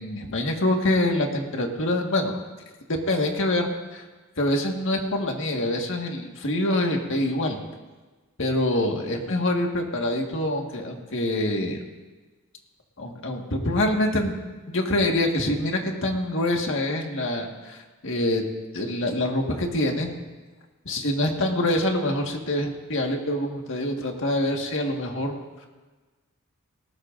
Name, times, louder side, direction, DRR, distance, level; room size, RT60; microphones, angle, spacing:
voice 1, 0.0-2.4 2.9-4.0 4.4-7.6 8.4-11.8 13.0-14.4 14.7-18.4 18.7-20.1 20.9-25.3, left 1 dB, 60° left, 1 dB, 1.7 m, -25 dB
19.0 x 19.0 x 2.6 m, 1.2 s
head